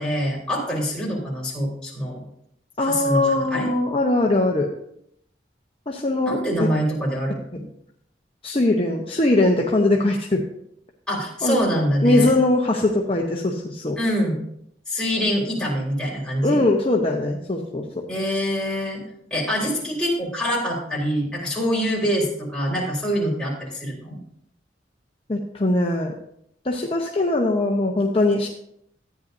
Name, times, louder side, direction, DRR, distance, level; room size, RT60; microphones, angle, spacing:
voice 1, 0.0-2.2 2.8-3.7 6.3-7.6 11.1-12.3 14.0-14.4 14.9-16.6 18.1-19.0 19.3-24.2, equal, 5° left, -5 dB, 3.6 m, -25 dB
voice 2, 2.8-4.7 5.9-6.7 8.4-10.4 11.4-11.6 12.0-14.0 16.4-18.0 25.3-26.1 26.6-28.5, left 2 dB, 30° left, 0 dB, 0.8 m, -21 dB
14.0 x 9.4 x 2.7 m, 0.71 s
head